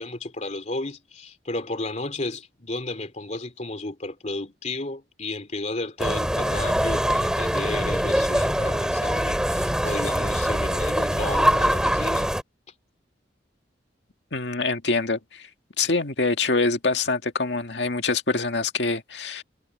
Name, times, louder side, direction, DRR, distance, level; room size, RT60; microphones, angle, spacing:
voice 1, 0.0-12.3, left 2 dB, 40° left, 2.9 m, -33 dB
sound 1, 6.0-12.4, equal, 5° right, 2.4 m, -23 dB
voice 2, 14.3-15.5 15.8-19.4, left 3 dB, 80° left, 1.9 m, -25 dB
head